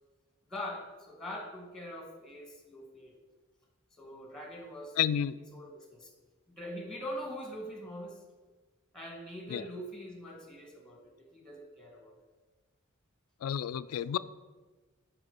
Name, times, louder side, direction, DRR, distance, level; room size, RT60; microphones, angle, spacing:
voice 1, 0.5-3.1 4.0-5.0 5.5-6.1 6.6-8.2 8.9-12.1 13.6-14.0, equal, 5° left, 1 dB, 1.4 m, -43 dB
voice 2, 5.0-5.4 9.5-9.7 13.4-14.2, left 9 dB, 85° left, 17 dB, 0.3 m, -30 dB
8.8 x 3.7 x 5.3 m, 1.3 s
head